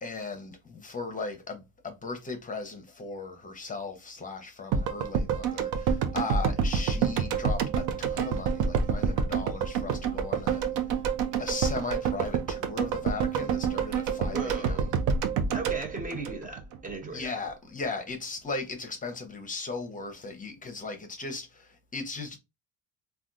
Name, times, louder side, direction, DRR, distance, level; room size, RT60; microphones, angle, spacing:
voice 1, 0.0-11.0 11.4-15.0 17.1-22.4, left 3 dB, 25° left, 0.7 m, -37 dB
sound 1, 4.7-16.9 17.2-17.3, right 6 dB, 65° right, 0.6 m, -28 dB
voice 2, 14.3-14.9 15.5-17.3, right 2 dB, 25° right, 0.7 m, -37 dB
3.4 x 2.3 x 2.6 m
supercardioid pair, 100°, 33 cm